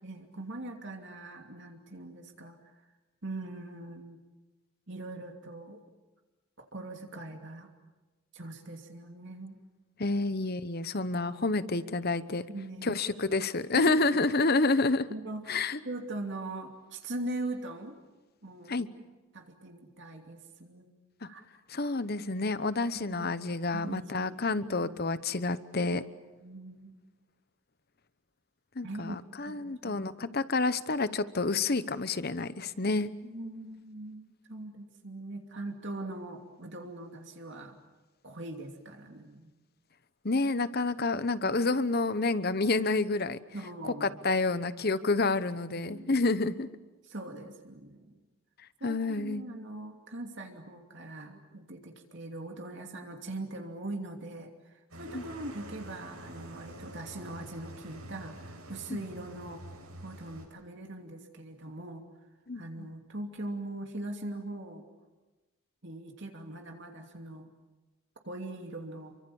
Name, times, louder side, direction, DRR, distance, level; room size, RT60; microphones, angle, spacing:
voice 1, 0.0-2.6 3.2-4.2 4.9-5.8 6.6-7.7 8.3-9.6 12.5-13.0 13.7-14.2 15.1-18.0 18.4-18.9 19.3-20.9 21.2-21.4 23.1-23.3 23.7-24.4 24.8-24.9 25.9-26.0 26.4-26.9 28.8-30.1 33.2-37.8 38.2-39.5 41.1-41.5 43.5-44.2 45.7-46.2 47.0-48.2 48.8-59.6 60.0-62.0 62.5-64.8 65.8-67.5 68.2-69.1, right 2 dB, 55° right, 3 dB, 2.8 m, -41 dB
voice 2, 10.0-12.4 12.8-15.1 15.5-15.8 18.7-18.9 21.2-21.3 21.7-26.0 28.8-33.1 40.2-43.4 43.8-46.7 48.8-49.5 55.1-55.2 62.5-62.9, left 3 dB, 45° left, 14 dB, 1.0 m, -29 dB
sound 1, 54.9-60.5, right 1 dB, 80° right, 7.8 m, -47 dB
29.0 x 24.0 x 7.1 m, 1.2 s
head